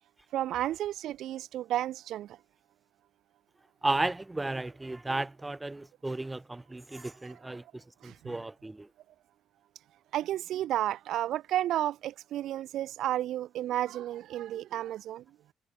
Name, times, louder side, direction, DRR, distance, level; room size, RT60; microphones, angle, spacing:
voice 1, 0.3-2.4 7.3-7.4 8.0-8.3 10.1-15.2, right 13 dB, 85° right, 0.8 m, -32 dB
voice 2, 3.8-8.9, right 2 dB, 15° right, 1.2 m, -34 dB
cardioid pair, 105°, 0 cm